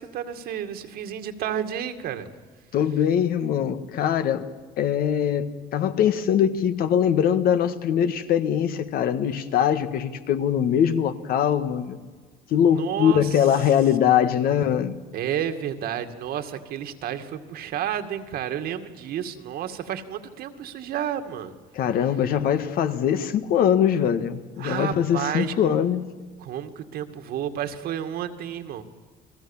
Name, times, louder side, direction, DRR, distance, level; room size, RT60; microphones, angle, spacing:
voice 1, 0.0-2.3 12.7-13.4 15.1-21.5 24.6-25.7 26.4-28.8, right 9 dB, 70° right, 7 dB, 2.1 m, -31 dB
voice 2, 2.7-4.5 4.8-12.0 12.5-15.0 21.7-26.0, left 9 dB, 65° left, 11 dB, 1.6 m, -22 dB
30.0 x 20.5 x 7.3 m, 1.5 s
cardioid pair, 145°, 17 cm